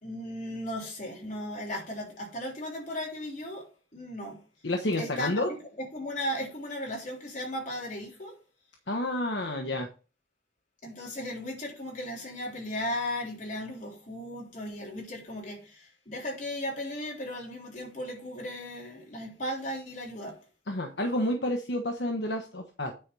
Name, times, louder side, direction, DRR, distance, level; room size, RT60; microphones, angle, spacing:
voice 1, 0.0-3.7 3.9-4.4 5.0-5.4 5.8-8.4 10.8-20.4, left 1 dB, 40° left, 3.6 m, -36 dB
voice 2, 4.6-5.5 8.9-9.9 20.7-22.9, left 1 dB, 70° left, 1.2 m, -30 dB
9.8 x 4.8 x 5.4 m
head